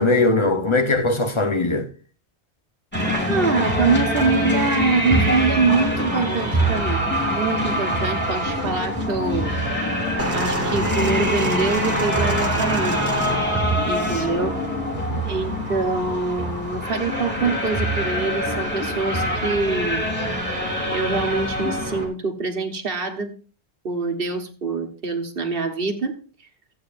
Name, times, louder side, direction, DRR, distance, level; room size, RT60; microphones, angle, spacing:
voice 1, 0.0-1.9 15.1-15.3, left 2 dB, 30° left, 0.9 m, -20 dB
sound 1, 2.9-22.1, equal, 10° left, 3.0 m, -24 dB
voice 2, 3.3-9.6 10.3-13.1 13.8-14.6 15.2-20.1 20.9-23.3 23.8-26.2, right 4 dB, 55° right, 1.4 m, -24 dB
sound 2, 10.2-14.3 15.2-15.3, equal, 15° right, 1.0 m, -26 dB
15.0 x 8.5 x 2.5 m
omnidirectional pair, 1.1 m